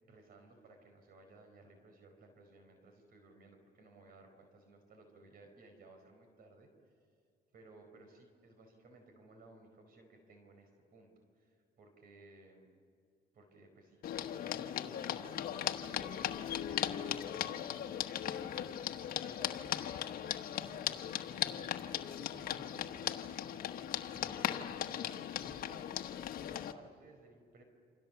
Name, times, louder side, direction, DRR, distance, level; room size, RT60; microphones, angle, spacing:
voice 1, 0.0-6.7 7.5-12.7 13.3-14.0 14.3-23.5 24.1-25.8 26.5-27.6, right 2 dB, 60° right, 5 dB, 4.7 m, -59 dB
sound 1, 14.0-26.7, left 10 dB, 60° left, 1.3 m, -38 dB
28.0 x 27.5 x 7.1 m, 2.3 s
cardioid pair, 110°, 17 cm